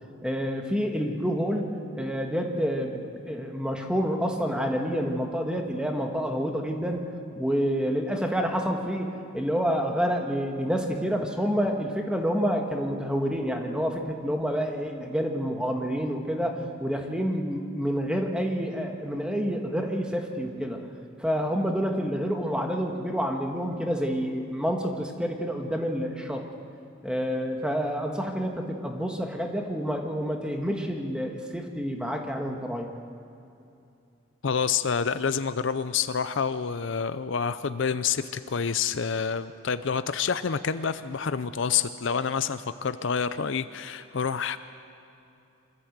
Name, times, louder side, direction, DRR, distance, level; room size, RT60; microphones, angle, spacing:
voice 1, 0.2-1.7 1.9-7.1 7.4-20.8 21.2-26.4 27.0-33.0, equal, 5° right, 2 dB, 1.6 m, -28 dB
voice 2, 34.4-44.6, left 6 dB, 60° left, 12 dB, 0.5 m, -28 dB
25.5 x 14.0 x 8.0 m, 2.6 s
head